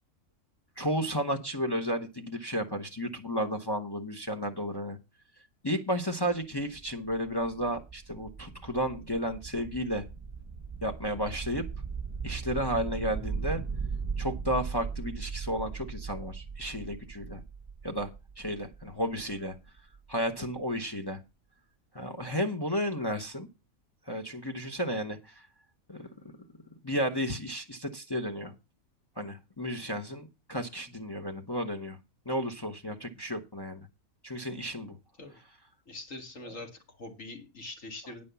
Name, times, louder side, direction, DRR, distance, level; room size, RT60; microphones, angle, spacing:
voice 1, 0.8-5.0 5.6-10.0 10.8-11.6 12.2-13.6 14.2-17.4 17.8-18.1 18.4-19.5 20.1-21.2 21.9-23.5 24.1-25.3 25.9-26.1 26.8-28.5 29.2-32.0 32.3-33.9 34.2-34.9, equal, 20° left, 5 dB, 0.9 m, -32 dB
sound 1, 6.3-20.0, right 5 dB, 15° right, 0.6 m, -38 dB
voice 2, 35.9-38.2, left 2 dB, 60° left, 4 dB, 2.5 m, -43 dB
10.0 x 5.4 x 6.9 m, 0.26 s
omnidirectional pair, 1.5 m